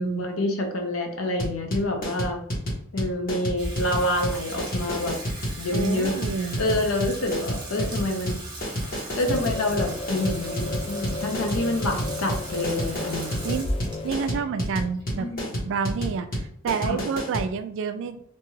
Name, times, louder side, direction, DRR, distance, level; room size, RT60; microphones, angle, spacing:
voice 1, 0.0-2.4 2.9-5.2 5.6-8.4 8.8-13.4 15.2-15.6 16.8-17.0, left 1 dB, 75° left, 3 dB, 0.6 m, -27 dB
sound 1, 1.4-17.5, equal, 45° left, 1.2 m, -29 dB
Water tap faucet / Sink (filling or washing), 3.5-15.9, right 1 dB, 20° right, 0.7 m, -38 dB
voice 2, 5.7-6.6 13.4-13.7 14.0-15.3 15.6-18.2, right 6 dB, 65° right, 10 dB, 0.3 m, -29 dB
sound 2, 9.3-14.4, left 2 dB, 25° left, 0.3 m, -35 dB
2.8 x 2.3 x 3.1 m, 0.64 s
head